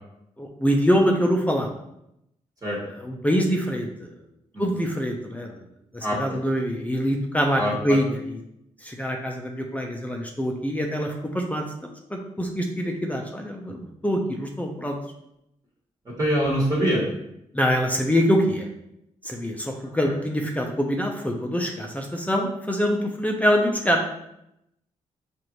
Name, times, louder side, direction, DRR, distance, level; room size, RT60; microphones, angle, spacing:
voice 1, 0.4-1.7 3.0-4.1 4.6-5.6 5.9-8.1 8.8-11.6 12.1-15.0 17.5-18.7 19.2-24.0, equal, 10° left, 1 dB, 0.6 m, -24 dB
voice 2, 4.5-4.9 6.0-6.4 7.6-8.0 16.0-17.0 20.0-20.1, equal, 25° right, -5 dB, 1.4 m, -25 dB
4.8 x 2.6 x 3.0 m, 0.81 s
cardioid pair, 60°, 13 cm